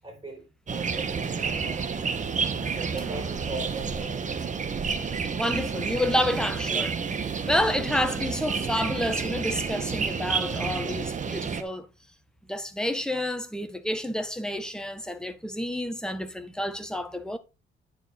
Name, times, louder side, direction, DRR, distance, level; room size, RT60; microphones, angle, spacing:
voice 1, 0.0-1.9 2.7-4.5, right 2 dB, 20° right, 4.5 m, -39 dB
sound 1, 0.7-11.6, right 5 dB, 40° right, 1.2 m, -30 dB
voice 2, 5.3-11.9 12.5-17.4, left 1 dB, 5° left, 1.5 m, -29 dB
9.9 x 5.0 x 4.7 m
cardioid pair, 90°, 20 cm